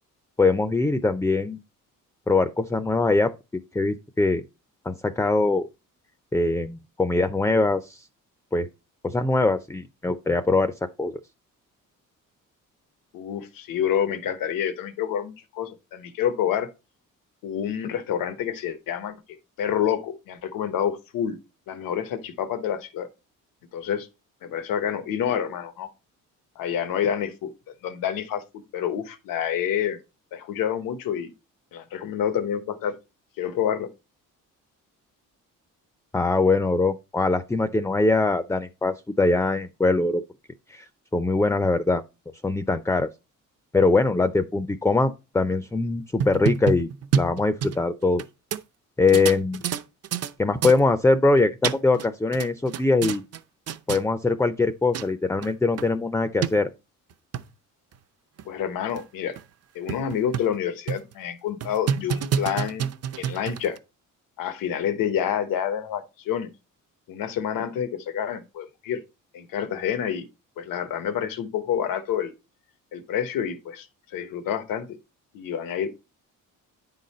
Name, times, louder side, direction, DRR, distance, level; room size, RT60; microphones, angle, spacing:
voice 1, 0.4-1.6 2.3-3.3 3.7-4.4 4.9-5.7 6.3-8.1 8.5-8.7 9.0-10.7 11.0-11.1 36.1-40.2 40.7-42.0 42.4-43.1 43.7-46.9 47.2-48.2 49.0-49.6 50.4-53.2 53.9-56.7, left 3 dB, 10° left, 0.5 m, -22 dB
voice 2, 13.1-16.7 17.4-21.4 21.7-23.1 23.7-24.1 24.4-25.9 26.6-27.5 27.8-30.0 30.3-31.3 31.7-32.9 33.4-33.9 58.4-59.4 59.7-62.9 63.2-63.8 64.4-66.5 67.1-69.0 69.3-70.3 70.6-72.3 72.9-73.9 74.1-74.9 75.3-75.9, left 9 dB, 90° left, 1.1 m, -28 dB
sound 1, 46.0-48.2 48.5-48.6 49.1-50.3 50.6-50.8 51.4-52.1 52.3-53.4 53.7-54.0 54.7-54.8 54.9-55.1 55.4-55.5 55.8-55.9 56.4-56.5 57.1-57.4 57.9-58.0 58.4-58.5 59.0-59.1 59.4-59.5 59.9-60.6 60.9-61.1 61.6-63.8, right 8 dB, 50° right, 0.7 m, -28 dB
9.9 x 4.0 x 4.2 m
cardioid pair, 120°, 33 cm